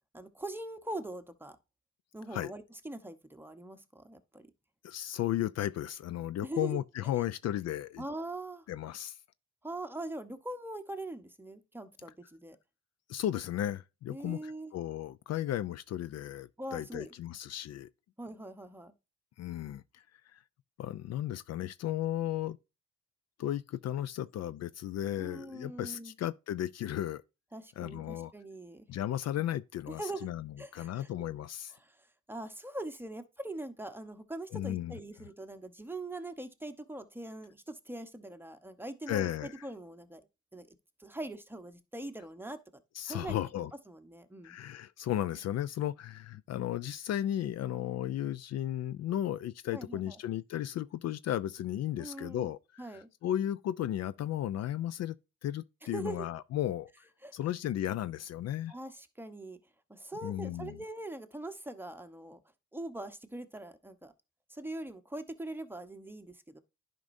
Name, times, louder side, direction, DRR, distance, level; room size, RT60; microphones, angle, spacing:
voice 1, 0.1-1.6 2.1-4.5 6.4-6.8 8.0-8.6 9.6-12.6 14.1-14.7 16.6-17.1 18.2-18.9 25.2-26.1 27.5-28.8 29.9-30.3 30.6-31.1 31.8-40.2 40.5-42.8 43.1-43.3 43.9-44.6 49.7-50.2 52.0-52.5 52.8-53.1 55.9-56.3 57.2-57.3 58.7-59.6 59.9-62.4 62.7-64.1 64.5-66.6, right 2 dB, 5° right, 0.9 m, -42 dB
voice 2, 4.8-8.0 8.7-9.2 13.1-17.9 19.4-20.0 20.3-20.4 20.8-22.6 23.4-27.2 27.8-28.3 28.9-31.7 34.5-34.9 39.1-39.7 43.0-43.7 44.4-55.2 55.4-56.9 57.3-58.7 60.2-60.8, left 12 dB, 60° left, 0.4 m, -35 dB
10.5 x 5.2 x 2.6 m
cardioid pair, 90°, 30 cm